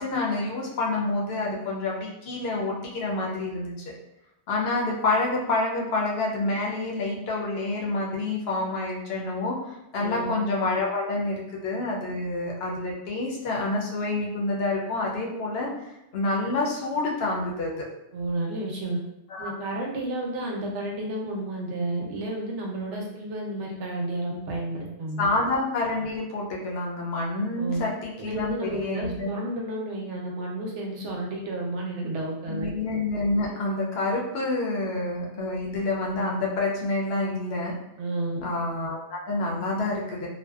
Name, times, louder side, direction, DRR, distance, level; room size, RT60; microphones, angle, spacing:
voice 1, 0.0-3.9 4.5-15.7 16.1-17.9 19.3-19.5 25.2-29.3 32.5-37.7 38.4-40.3, left 2 dB, 65° left, -2 dB, 0.7 m, -28 dB
voice 2, 9.9-10.3 18.1-19.0 19.4-25.3 27.6-27.8 28.2-32.7 38.0-38.5, right 2 dB, 85° right, -1 dB, 0.9 m, -31 dB
2.5 x 2.1 x 2.2 m, 0.88 s
omnidirectional pair, 1.2 m